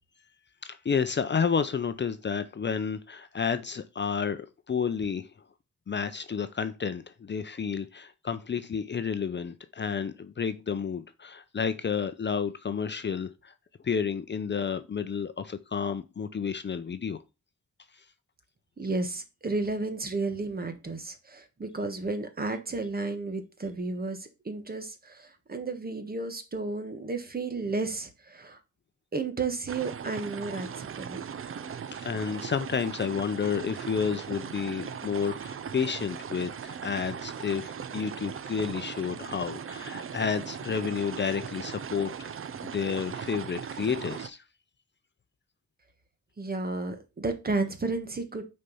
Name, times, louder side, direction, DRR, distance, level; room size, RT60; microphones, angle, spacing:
voice 1, 0.6-5.3 5.9-13.5 13.8-17.2 17.9-18.0 31.9-42.3 42.6-44.4, left 6 dB, 40° left, 0.6 m, -31 dB
voice 2, 18.8-28.6 29.1-31.2 46.4-48.4, right 3 dB, 30° right, 1.3 m, -32 dB
sound 1, 29.7-44.3, right 7 dB, 45° right, 0.6 m, -39 dB
6.5 x 4.5 x 5.5 m
wide cardioid pair, 120°, 29 cm